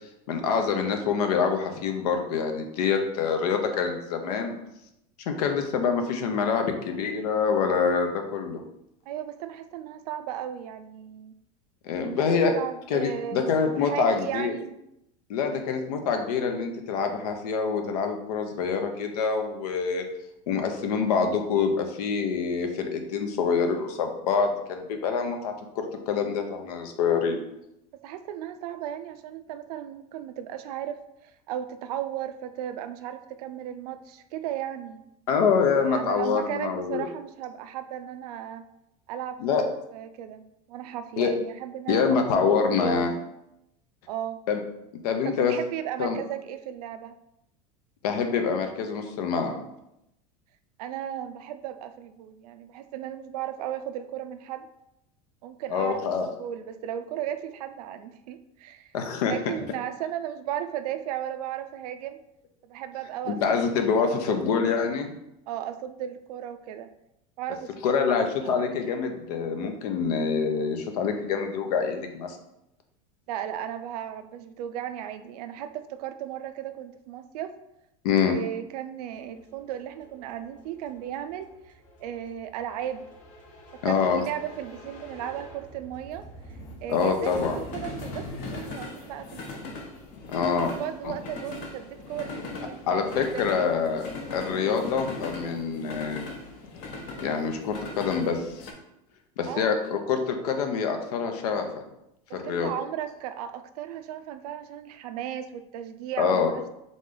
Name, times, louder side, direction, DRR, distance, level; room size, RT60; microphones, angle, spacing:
voice 1, 0.3-4.6 5.3-8.6 11.8-12.5 12.9-14.5 15.3-20.0 20.5-27.4 35.3-37.1 39.4-39.6 41.2-41.3 41.9-43.1 44.5-44.6 45.0-45.5 46.0-46.2 48.0-49.6 55.7-56.3 58.9-59.4 63.3-65.1 67.8-72.4 78.0-78.4 83.8-84.2 86.9-87.6 90.3-90.8 91.0-91.2 92.9-94.0 94.3-96.3 97.2-98.7 99.4-101.8 102.3-102.7 106.2-106.5, left 6 dB, 80° left, 5 dB, 0.8 m, -26 dB
voice 2, 9.1-11.3 12.0-14.7 27.9-35.1 35.8-38.6 39.1-39.6 39.9-40.4 40.7-42.2 42.5-43.2 44.1-44.4 45.2-47.1 50.8-54.7 55.4-58.9 59.3-62.2 62.7-63.7 64.1-64.4 65.5-66.9 67.4-67.7 68.0-68.2 68.4-68.6 73.3-77.5 78.1-81.7 82.0-83.0 83.7-86.2 86.8-89.9 90.7-93.9 99.5-99.7 102.3-106.7, right 10 dB, 85° right, 10 dB, 0.4 m, -35 dB
sound 1, 79.2-98.7, left 2 dB, 40° left, 0.7 m, -40 dB
3.8 x 3.1 x 3.8 m, 0.83 s
supercardioid pair, 165°, 19 cm